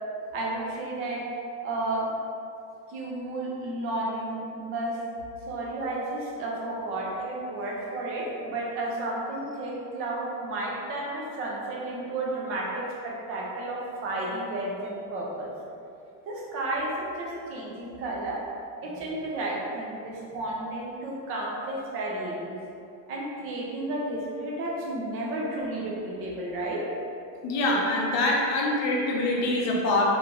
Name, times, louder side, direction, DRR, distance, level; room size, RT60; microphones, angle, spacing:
voice 1, 0.3-1.2 1.6-2.1 2.9-5.0 5.5-15.5 16.3-18.4 18.8-22.6 23.1-26.8, right 2 dB, 30° right, -3 dB, 0.4 m, -32 dB
voice 2, 27.4-30.0, left 2 dB, 35° left, -3 dB, 0.5 m, -24 dB
3.9 x 3.2 x 2.3 m, 2.6 s
cardioid pair, 170°, 48 cm